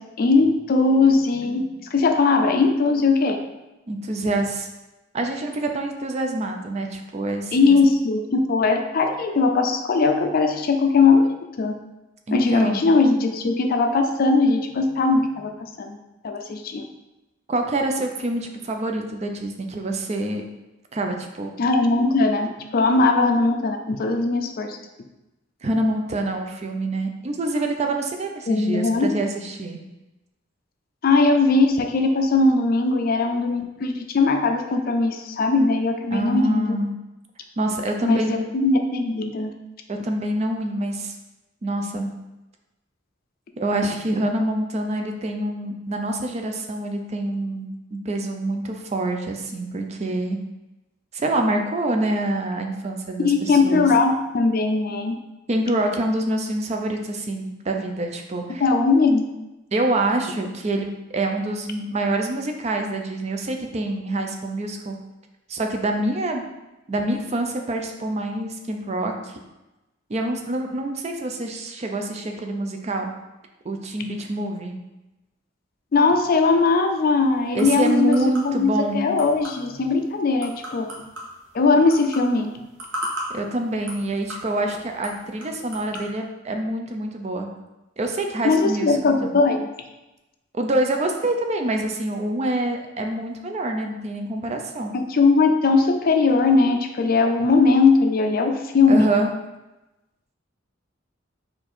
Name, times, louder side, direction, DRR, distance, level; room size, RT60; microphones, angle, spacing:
voice 1, 0.0-1.6 1.9-3.4 7.5-11.3 11.6-11.7 12.3-15.5 15.8-16.0 16.2-16.8 21.6-24.8 28.5-29.1 31.0-36.8 38.0-39.5 53.2-55.2 58.6-59.3 75.9-78.2 78.4-80.9 81.5-82.5 88.4-89.7 94.9-99.1, left 3 dB, 45° left, 5 dB, 0.4 m, -19 dB
voice 2, 3.9-4.7 5.1-7.5 12.3-12.9 17.5-20.4 20.9-21.5 25.6-29.8 36.1-36.9 37.6-38.5 39.9-41.1 41.6-42.1 43.6-50.4 51.1-53.9 55.5-58.6 59.7-60.9 61.1-65.0 65.5-66.4 66.9-69.4 70.1-73.1 73.6-74.8 77.5-79.1 83.3-87.5 88.0-89.4 90.5-94.9 98.9-99.3, right 1 dB, 35° right, 4 dB, 0.4 m, -26 dB
sound 1, 76.7-86.1, equal, 65° right, 1.2 m, -38 dB
4.4 x 2.6 x 4.2 m, 1.0 s
head